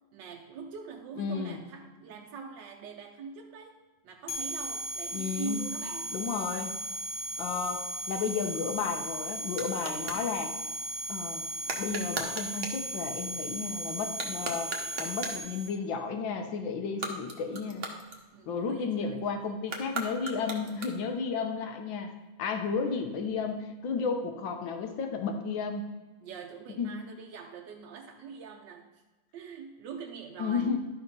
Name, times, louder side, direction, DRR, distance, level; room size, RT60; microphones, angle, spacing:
voice 1, 0.1-3.8 4.0-6.1 18.3-19.3 26.2-29.0 29.3-30.8, right 5 dB, 75° right, 1 dB, 1.4 m, -43 dB
voice 2, 1.2-1.6 5.1-5.6 6.1-6.7 7.4-10.5 11.1-11.5 11.8-14.7 15.0-17.9 18.5-22.1 22.4-25.9 26.8-26.9 30.4-30.8, left 5 dB, 80° left, 5 dB, 1.7 m, -33 dB
sound 1, 4.3-15.7, right 1 dB, 60° left, 1.3 m, -36 dB
sound 2, 8.6-10.3 11.6-12.9 14.1-15.5 16.8-18.7 19.6-21.2, right 3 dB, 40° right, 1.0 m, -39 dB
12.0 x 4.3 x 5.3 m, 1.2 s
omnidirectional pair, 2.0 m